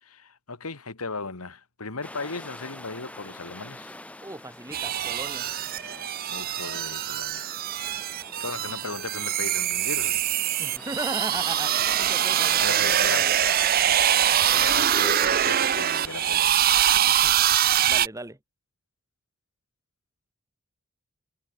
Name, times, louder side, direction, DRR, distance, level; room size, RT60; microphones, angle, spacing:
voice 1, 0.0-4.0 6.3-7.5 8.4-10.2 12.6-13.3 14.5-16.7, left 4 dB, 80° left, 2.1 m, -37 dB
sound 1, 2.0-16.5, left 1 dB, 5° left, 1.1 m, -43 dB
voice 2, 4.2-5.5 10.6-13.3 17.1-17.4 17.9-18.4, right 2 dB, 15° right, 1.8 m, -37 dB
sound 2, 4.7-18.1, right 11 dB, 40° right, 0.5 m, -23 dB
head